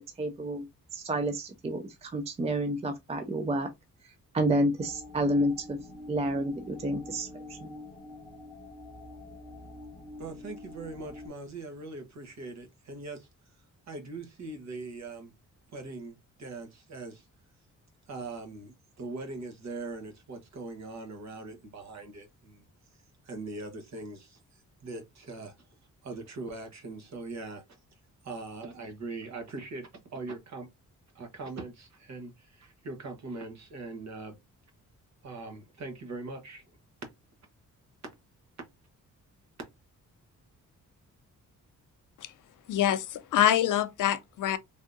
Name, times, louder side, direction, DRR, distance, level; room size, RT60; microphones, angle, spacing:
voice 1, 0.2-0.7 0.9-3.7 4.3-5.8 6.1-7.7, right 1 dB, 20° right, 0.3 m, -29 dB
sound 1, 4.8-11.3, left 2 dB, 10° left, 0.7 m, -46 dB
voice 2, 10.2-13.3 13.9-15.3 15.7-17.3 18.1-22.6 23.2-25.6 26.0-27.6 28.2-30.7 31.1-34.4 35.2-36.6, right 3 dB, 55° right, 1.0 m, -41 dB
voice 3, 42.7-44.6, left 11 dB, 75° left, 0.5 m, -25 dB
3.5 x 2.6 x 2.6 m
wide cardioid pair, 165°, 32 cm